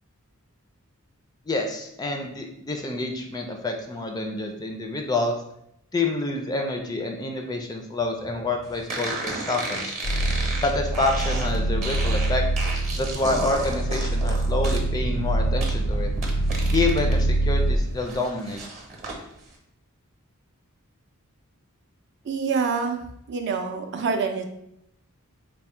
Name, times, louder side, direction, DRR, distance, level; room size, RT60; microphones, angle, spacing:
voice 1, 1.5-5.4 5.9-10.0 10.6-12.4 13.0-16.1 16.7-18.6, left 2 dB, 15° left, 3 dB, 0.3 m, -27 dB
sound 1, 8.9-17.2 17.6-19.2, right 2 dB, 30° right, 0.8 m, -33 dB
sound 2, 10.0-17.8, right 1 dB, 80° left, 0.4 m, -25 dB
voice 2, 22.2-23.0 23.3-24.4, right 5 dB, 55° right, 4 dB, 0.4 m, -26 dB
3.4 x 2.1 x 4.2 m, 0.76 s
head